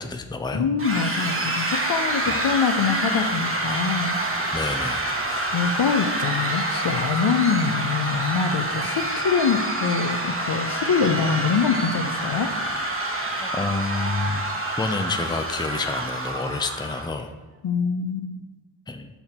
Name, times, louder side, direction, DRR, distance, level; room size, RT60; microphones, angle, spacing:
voice 1, 0.0-0.7 2.3-2.4 4.5-5.1 13.4-14.4 14.8-17.3 18.9-19.1, left 3 dB, 10° left, 6 dB, 0.6 m, -28 dB
voice 2, 0.5-4.2 5.4-12.5 17.6-18.4, left 6 dB, 55° left, 7 dB, 0.7 m, -24 dB
sound 1, 0.8-17.1, right 1 dB, 25° right, 1.2 m, -27 dB
7.1 x 4.0 x 4.4 m, 1.2 s
cardioid pair, 45°, 49 cm